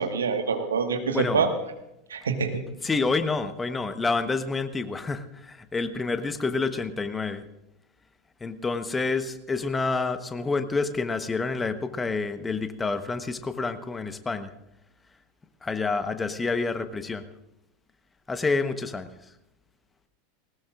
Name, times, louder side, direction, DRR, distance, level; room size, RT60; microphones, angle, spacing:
voice 1, 0.0-1.5 2.1-2.6, right 5 dB, 75° right, 6 dB, 1.5 m, -25 dB
voice 2, 1.1-1.4 2.8-7.4 8.4-14.5 15.6-17.2 18.3-19.1, left 4 dB, 15° left, 10 dB, 1.0 m, -28 dB
19.5 x 19.0 x 2.5 m, 0.88 s
figure-of-eight pair, 85°, 0 cm